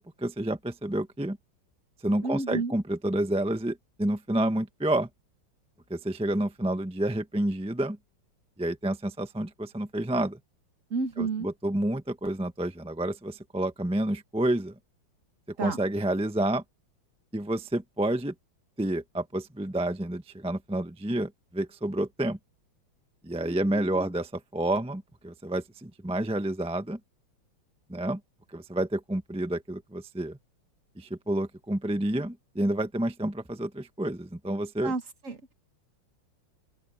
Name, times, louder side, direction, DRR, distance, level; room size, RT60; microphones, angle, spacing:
voice 1, 0.0-1.4 2.0-5.1 5.9-8.0 8.6-10.4 11.2-14.7 15.6-16.6 17.3-18.3 18.8-22.4 23.2-27.0 27.9-28.2 28.5-30.4 31.0-34.9, right 1 dB, 5° right, 0.7 m, -29 dB
voice 2, 2.2-2.8 10.9-11.5 15.6-15.8 23.4-24.1 34.8-35.4, right 3 dB, 40° right, 1.8 m, -32 dB
open air
omnidirectional pair, 2.2 m